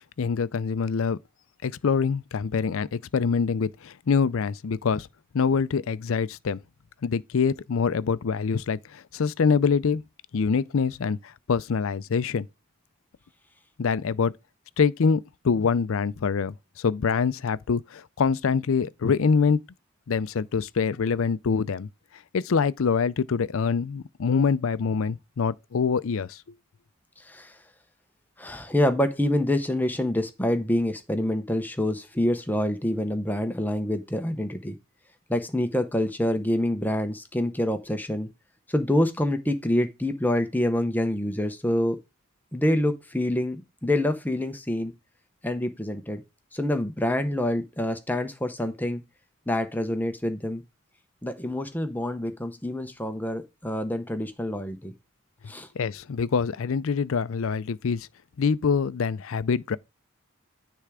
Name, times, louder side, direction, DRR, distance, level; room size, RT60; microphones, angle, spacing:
voice 1, 0.2-1.2 1.6-5.1 5.3-6.6 7.0-10.0 10.3-12.5 13.8-14.3 14.8-19.6 20.1-21.9 22.3-26.4 55.7-58.1 58.4-59.8, left 5 dB, 70° left, 0.4 m, -25 dB
voice 2, 27.2-27.6 28.4-34.8 35.3-38.3 38.7-42.0 42.5-44.9 45.4-46.2 46.5-49.0 49.5-50.6 51.2-54.9 55.5-55.7, left 1 dB, 10° left, 0.7 m, -26 dB
10.0 x 3.4 x 4.8 m
head